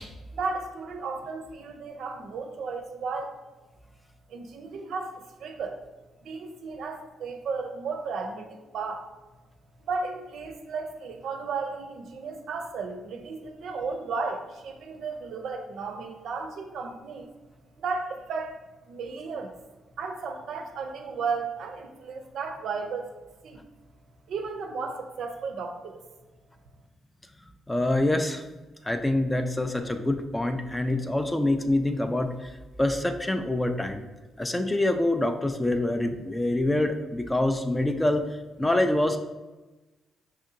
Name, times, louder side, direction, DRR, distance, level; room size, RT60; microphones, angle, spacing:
voice 1, 0.4-3.3 4.3-5.8 6.2-9.1 9.8-17.3 17.8-18.6 18.9-19.5 20.0-23.1 23.4-23.6 24.3-26.0, right 4 dB, 70° right, 5 dB, 0.5 m, -34 dB
voice 2, 27.7-28.4 28.8-34.0 34.4-38.3 38.6-39.2, left 1 dB, 15° left, 7 dB, 0.3 m, -26 dB
5.2 x 2.7 x 2.5 m, 1.1 s
cardioid pair, 90°, 0 cm